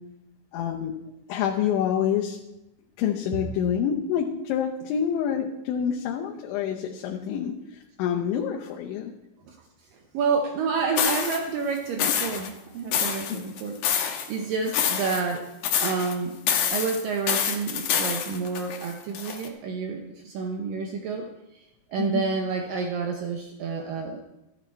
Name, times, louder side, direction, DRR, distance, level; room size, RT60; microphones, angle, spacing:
voice 1, 0.5-1.0 1.3-2.4 3.0-9.1 13.3-13.5 22.0-22.2, left 8 dB, 85° left, 0 dB, 3.3 m, -27 dB
voice 2, 10.1-13.8 14.3-15.4 15.8-16.4 16.7-21.3 21.5-21.6 21.9-24.2, right 5 dB, 85° right, 3 dB, 1.9 m, -29 dB
sound 1, 11.0-11.4 12.0-12.5 12.9-14.3 14.7-15.4 15.6-16.1 16.5-19.5, left 8 dB, 70° left, 2.3 m, -26 dB
14.0 x 10.5 x 4.5 m, 0.94 s
omnidirectional pair, 5.3 m